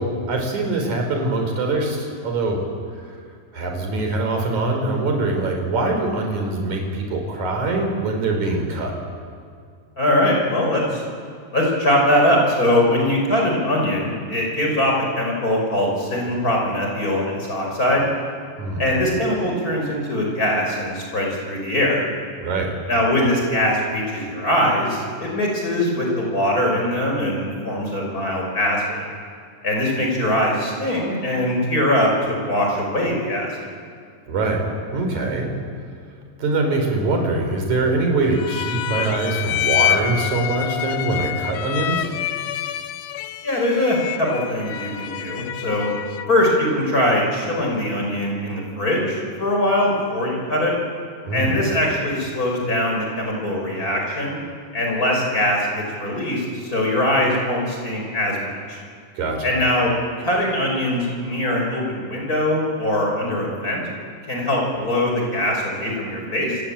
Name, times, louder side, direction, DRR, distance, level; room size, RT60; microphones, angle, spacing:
voice 1, 0.0-2.6 3.5-8.9 18.6-18.8 22.4-22.7 34.3-34.6 34.9-35.5 36.4-42.1 51.3-51.6 59.2-59.4, right 2 dB, 55° right, 2 dB, 5.4 m, -23 dB
voice 2, 10.0-11.0 11.5-18.1 18.8-22.0 22.9-29.0 29.6-33.7 43.4-45.9 46.3-50.7 51.3-54.4 54.7-58.8 59.4-63.8 64.3-66.6, left 1 dB, 25° left, -1 dB, 5.9 m, -22 dB
sound 1, 38.3-46.4, left 10 dB, 85° left, 1.5 m, -27 dB
28.5 x 19.5 x 8.8 m, 2.2 s
omnidirectional pair, 4.1 m